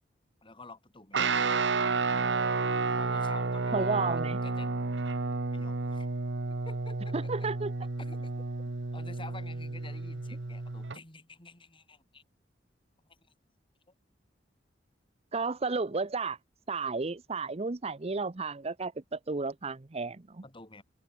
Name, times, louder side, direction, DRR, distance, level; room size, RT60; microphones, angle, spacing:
voice 1, 0.4-1.5 3.0-4.7 5.5-6.1 6.7-7.5 8.0-8.2 8.9-12.2 20.4-20.8, left 3 dB, 30° left, 5.7 m, -50 dB
Guitar, 1.1-11.0, right 4 dB, 70° right, 1.1 m, -31 dB
voice 2, 3.7-4.4 7.1-7.7 15.3-16.4 16.7-20.4, right 4 dB, 35° right, 0.8 m, -32 dB
head